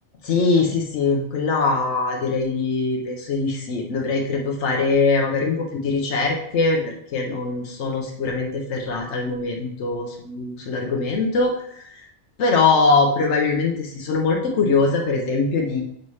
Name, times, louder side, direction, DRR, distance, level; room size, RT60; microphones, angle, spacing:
voice 1, 0.2-12.1 12.4-15.8, left 4 dB, 90° left, 0 dB, 1.1 m, -22 dB
6.5 x 5.5 x 3.2 m, 0.73 s
omnidirectional pair, 1.2 m